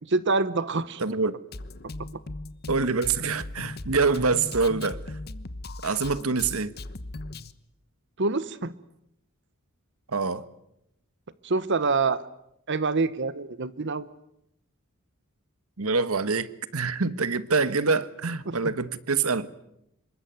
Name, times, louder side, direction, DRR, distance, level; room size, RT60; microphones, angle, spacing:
voice 1, 0.1-1.0 8.2-8.7 11.4-12.2 12.7-14.1 18.5-18.6, right 3 dB, 55° right, 1.0 m, -26 dB
voice 2, 1.0-1.3 2.7-5.0 5.8-6.7 10.1-10.5 15.8-19.5, right 4 dB, 75° right, 1.4 m, -25 dB
Drum kit, 1.5-7.5, left 2 dB, 45° left, 1.2 m, -38 dB
27.0 x 23.0 x 9.4 m
head